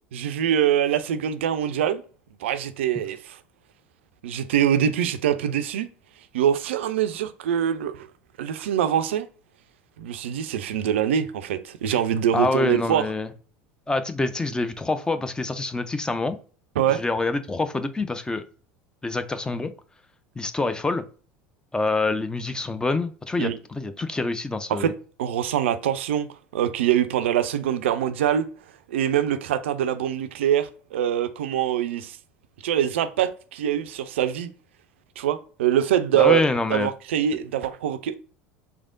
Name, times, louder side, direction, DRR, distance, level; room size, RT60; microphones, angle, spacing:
voice 1, 0.1-2.0 2.4-3.4 4.2-5.9 6.3-8.1 8.4-9.3 10.0-13.1 16.8-17.0 23.4-23.6 24.7-24.9 25.2-26.3 26.5-28.5 28.9-32.2 32.6-34.5 35.2-36.4 36.7-38.2, right 10 dB, 65° right, 0.3 m, -24 dB
voice 2, 12.3-13.3 13.9-16.4 16.9-18.4 19.0-19.7 20.4-21.0 21.7-24.9 36.1-36.9, left 3 dB, 10° left, 0.4 m, -26 dB
3.4 x 3.3 x 2.5 m
figure-of-eight pair, 70°, 7 cm